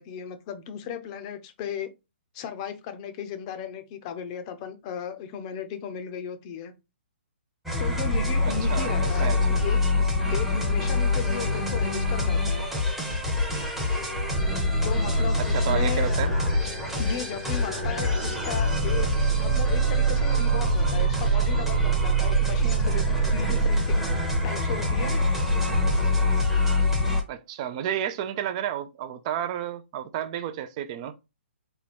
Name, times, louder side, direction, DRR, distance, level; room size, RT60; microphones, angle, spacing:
voice 1, 0.0-1.9 2.3-6.7 7.8-9.8 10.3-12.7 14.8-16.1 17.0-24.0 24.4-25.3, left 8 dB, 30° left, 0.7 m, -36 dB
sound 1, 7.7-27.2, equal, 5° right, 0.9 m, -24 dB
voice 2, 8.5-9.4 15.5-16.3 27.3-31.1, right 10 dB, 30° right, 0.4 m, -31 dB
4.4 x 2.3 x 4.2 m
hypercardioid pair, 155°, 6 cm